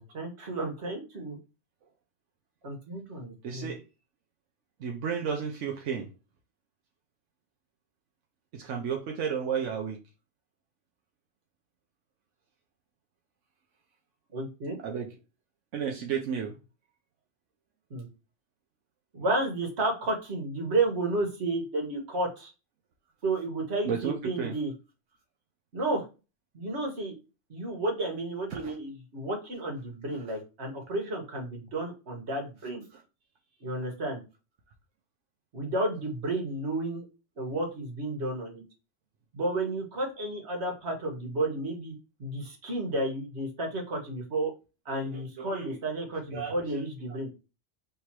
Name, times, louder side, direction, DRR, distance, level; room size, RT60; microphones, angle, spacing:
voice 1, 0.0-1.4 2.6-3.8 14.3-14.8 17.9-18.1 19.1-22.5 23.2-24.7 25.7-26.1 26.5-27.1 27.5-32.8 33.6-34.2 35.5-37.1 37.4-38.6 39.3-44.5 44.9-47.3, right 2 dB, 65° right, 2 dB, 1.7 m, -32 dB
voice 2, 3.4-3.8 4.8-6.1 8.5-10.0 14.8-15.1 15.7-16.6 23.9-24.5 28.5-28.6 44.9-45.7 46.3-46.5, right 7 dB, 90° right, 1 dB, 1.1 m, -32 dB
3.4 x 2.9 x 4.6 m, 0.29 s
omnidirectional pair, 1.2 m